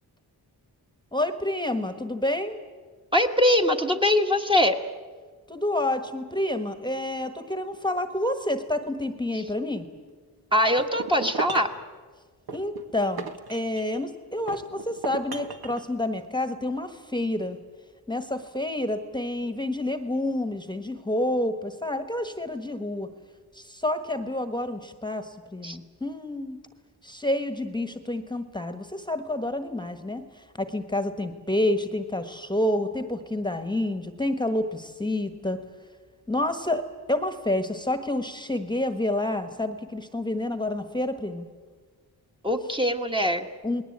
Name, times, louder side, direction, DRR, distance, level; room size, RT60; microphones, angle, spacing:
voice 1, 1.1-2.6 5.5-9.9 12.5-17.6 18.1-23.1 23.5-26.6 27.0-35.6 36.3-36.8 37.1-41.5 43.6-43.8, left 1 dB, 10° left, 9 dB, 1.4 m, -29 dB
voice 2, 3.1-4.8 10.5-11.7 25.6-25.8 42.4-43.5, left 1 dB, 10° right, 3 dB, 1.5 m, -22 dB
sound 1, 10.8-11.8 12.5-14.0 14.5-15.8, right 5 dB, 70° right, 1.9 m, -36 dB
29.0 x 20.0 x 8.8 m, 1.5 s
wide cardioid pair, 125°, 40 cm